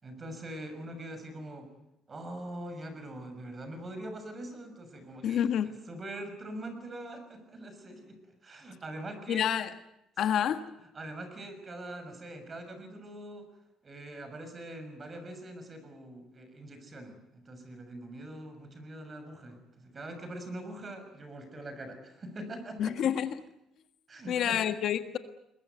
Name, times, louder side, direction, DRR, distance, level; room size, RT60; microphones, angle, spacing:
voice 1, 0.0-1.7 2.1-8.2 8.4-9.5 10.9-13.5 13.8-23.1 24.1-24.6, right 1 dB, 30° right, 8 dB, 6.2 m, -43 dB
voice 2, 5.2-5.7 9.3-9.7 10.2-10.7 22.8-23.4 24.3-25.2, left 9 dB, 60° left, 9 dB, 1.6 m, -28 dB
22.0 x 21.5 x 9.4 m, 0.85 s
cardioid pair, 115°, 0 cm